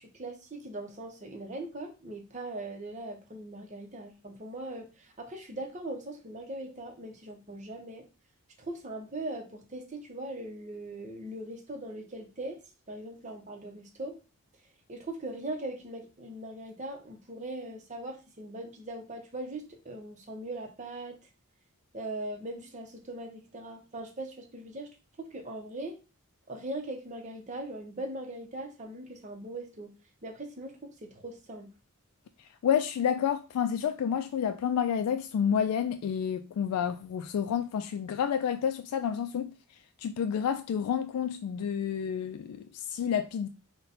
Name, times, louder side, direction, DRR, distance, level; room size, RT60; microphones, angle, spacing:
voice 1, 0.0-8.0 8.6-12.6 12.9-14.2 14.9-21.2 21.9-24.9 25.2-26.0 26.5-29.9 30.2-31.7, right 1 dB, 30° right, 0.7 m, -40 dB
voice 2, 32.6-39.5 40.0-43.5, left 8 dB, 85° left, 0.3 m, -29 dB
3.9 x 2.2 x 4.0 m
head